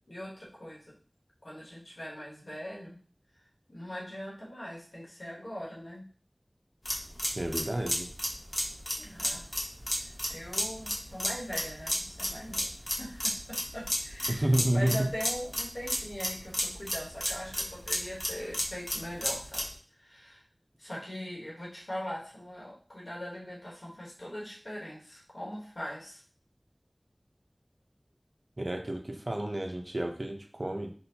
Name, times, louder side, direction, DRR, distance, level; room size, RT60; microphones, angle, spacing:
voice 1, 0.1-0.8 1.4-3.0 3.7-6.1 9.0-9.5 10.0-12.7 13.0-19.7 20.0-20.4 20.8-26.2, equal, 85° left, -5 dB, 1.2 m, -41 dB
sound 1, 6.8-19.7, equal, 40° left, 0.9 m, -33 dB
voice 2, 7.3-8.1 14.3-15.1 28.6-30.9, right 1 dB, 55° right, 3 dB, 0.6 m, -30 dB
3.9 x 2.2 x 2.8 m, 0.42 s
wide cardioid pair, 40°, 0 cm